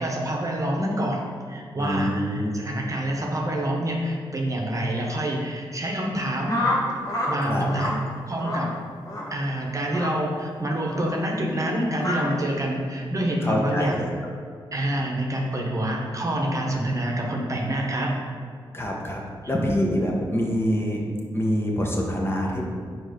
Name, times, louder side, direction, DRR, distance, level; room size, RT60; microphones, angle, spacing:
voice 1, 0.0-6.6 7.3-8.0 8.3-8.7 9.3-14.0 14.7-18.2 19.4-19.5, right 1 dB, 35° right, 0 dB, 1.0 m, -27 dB
voice 2, 1.8-2.6 7.4-7.7 13.4-14.1 18.7-19.2 19.5-21.0 21.3-22.6, equal, 25° left, -2 dB, 1.2 m, -25 dB
sound 1, 6.5-7.3 7.6-7.9 8.4-8.7 9.0-9.3 9.9-10.1 10.9-11.1 12.0-12.2, left 1 dB, 40° left, 1.4 m, -28 dB
4.6 x 4.3 x 5.1 m, 2.1 s
cardioid pair, 55°, 10 cm